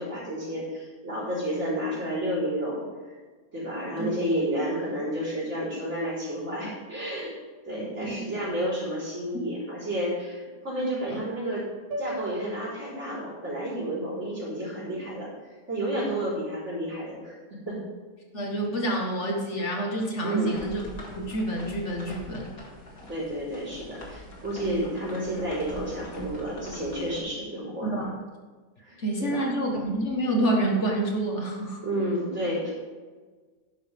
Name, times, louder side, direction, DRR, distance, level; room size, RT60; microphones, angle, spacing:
voice 1, 0.0-2.8 3.5-7.3 7.7-11.6 12.0-15.3 15.7-17.4 17.7-17.8 20.2-20.5 23.1-28.0 28.8-29.5 31.8-32.7, equal, 50° right, -7 dB, 4.4 m, -31 dB
sound 1, 11.9-16.2, right 1 dB, 85° right, 1.6 m, -42 dB
voice 2, 18.3-20.8 21.2-22.5 24.7-25.0 27.8-28.1 29.0-31.8, right 1 dB, 55° left, 0 dB, 1.8 m, -28 dB
sound 2, 20.4-27.2, equal, 75° left, 2.7 m, -42 dB
12.0 x 10.0 x 3.5 m, 1.4 s
omnidirectional pair, 1.5 m